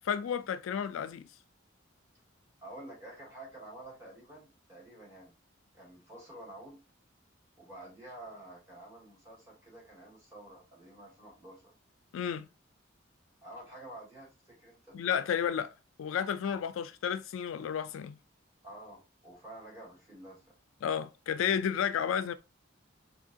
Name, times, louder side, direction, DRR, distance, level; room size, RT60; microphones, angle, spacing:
voice 1, 0.0-1.3 12.1-12.5 14.9-15.7 16.0-18.2 20.8-22.3, left 8 dB, 90° left, 0.3 m, -32 dB
voice 2, 2.6-5.4 5.7-6.8 7.6-11.7 13.4-15.0 18.6-20.5, right 1 dB, 15° right, 1.7 m, -49 dB
3.7 x 2.6 x 2.6 m
head